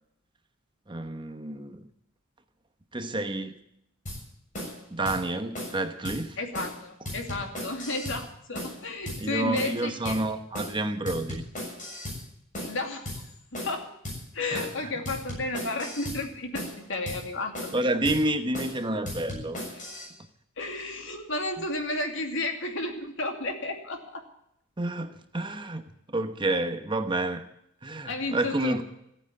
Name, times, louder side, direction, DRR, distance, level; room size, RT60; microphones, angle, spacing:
voice 1, 0.9-1.8 2.9-3.5 4.9-6.4 9.2-11.4 14.5-14.7 17.7-19.6 24.8-27.4 27.8-28.8, right 2 dB, 25° right, 1.0 m, -29 dB
sound 1, 4.1-4.2 4.5-4.8 5.1-5.2 5.5-5.8 6.0-6.2 6.5-6.8 7.1-8.2 8.5-8.8 9.1-9.2 9.5-9.8 10.1-10.2 10.5-10.8 11.1-12.2 12.5-12.8 13.1-13.2 13.5-13.8 14.0-14.2 14.5-14.8 15.1-16.2 16.5-16.8 17.1-17.2 17.5-17.8 18.1-18.2 18.5-18.8 19.1-20.1, left 1 dB, 40° left, 7.2 m, -36 dB
voice 2, 6.4-10.2 12.6-13.2 13.5-13.9 14.3-17.7 20.6-24.2 28.0-28.8, left 2 dB, 65° left, 2.6 m, -32 dB
15.0 x 9.0 x 9.6 m
head